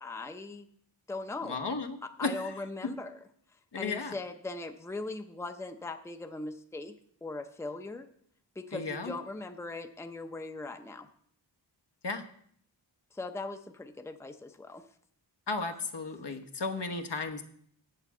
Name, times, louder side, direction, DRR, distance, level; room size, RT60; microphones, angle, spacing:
voice 1, 0.0-0.7 1.1-1.6 2.0-3.2 3.7-6.9 7.2-8.1 8.6-11.1 13.1-14.8, left 2 dB, 5° left, 7 dB, 0.6 m, -39 dB
voice 2, 1.4-2.5 3.7-4.1 8.7-9.1 12.0-12.2 15.5-17.4, left 3 dB, 65° left, 5 dB, 1.1 m, -34 dB
7.9 x 6.9 x 7.2 m, 0.64 s
wide cardioid pair, 80°, 44 cm